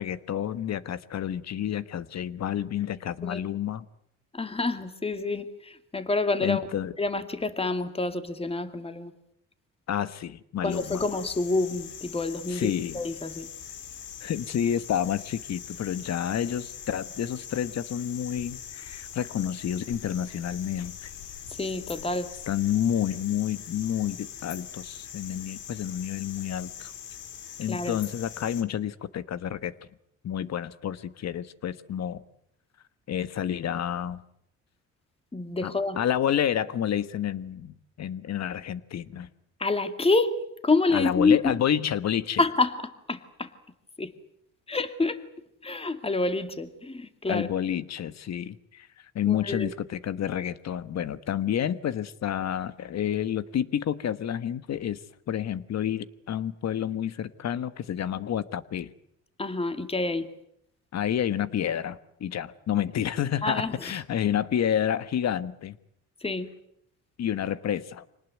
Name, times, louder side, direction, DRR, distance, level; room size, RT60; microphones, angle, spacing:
voice 1, 0.0-3.9 6.4-6.9 9.9-11.0 12.5-13.0 14.2-21.1 22.5-26.9 27.6-29.7 30.2-32.2 33.1-34.2 35.6-39.3 40.9-42.4 47.3-48.9 49.1-55.0 55.3-58.9 60.9-65.8 67.2-68.0, left 10 dB, 60° left, 14 dB, 1.3 m, -29 dB
voice 2, 4.3-6.7 7.0-9.1 10.6-13.5 21.6-22.3 27.7-28.0 35.3-36.0 39.6-40.3 40.6-41.6 42.4-42.7 43.1-43.5 44.0-44.1 44.7-45.2 45.6-47.5 49.2-49.7 59.4-60.3 63.4-63.9 66.2-66.5, left 3 dB, 20° left, 9 dB, 2.2 m, -27 dB
sound 1, 10.7-28.6, left 8 dB, 85° left, 2.7 m, -42 dB
25.5 x 19.0 x 9.4 m, 0.75 s
cardioid pair, 90°, 30 cm